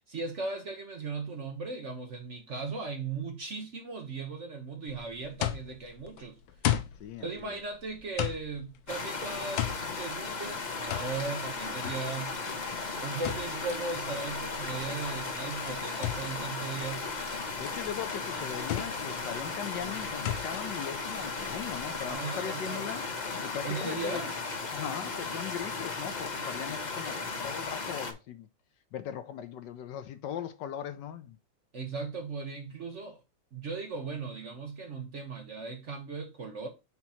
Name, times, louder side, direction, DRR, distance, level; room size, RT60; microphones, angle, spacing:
voice 1, 0.1-6.4 7.2-12.3 13.0-17.1 22.1-22.9 23.6-24.4 31.7-33.2 33.5-36.7, right 4 dB, 45° right, 1.1 m, -37 dB
sound 1, 4.9-22.1, left 11 dB, 90° left, 1.5 m, -37 dB
voice 2, 7.0-7.6 17.6-23.0 23.4-24.3 24.7-28.5 28.9-31.4, left 9 dB, 70° left, 1.2 m, -39 dB
sound 2, 8.9-28.1, left 4 dB, 40° left, 0.6 m, -36 dB
6.0 x 3.0 x 5.5 m
omnidirectional pair, 2.1 m